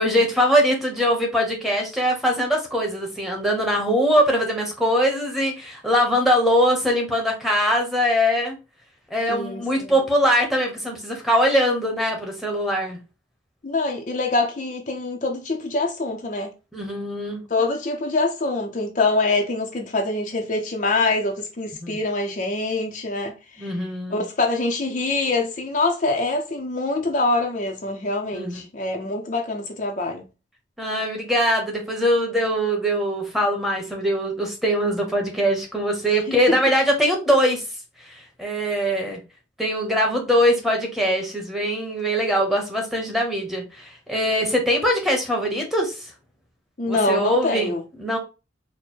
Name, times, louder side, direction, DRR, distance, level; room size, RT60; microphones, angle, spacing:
voice 1, 0.0-8.6 9.1-13.0 16.7-17.4 21.8-22.0 23.6-24.3 28.3-28.6 30.8-37.6 38.1-39.2 39.6-46.1 46.8-47.7 48.0-48.2, equal, ahead, 0.9 m, -22 dB
voice 2, 9.3-10.0 13.6-16.5 17.5-23.7 24.1-30.3 36.1-36.6 46.8-47.8, left 3 dB, 40° left, 0.5 m, -25 dB
4.3 x 2.1 x 4.3 m
head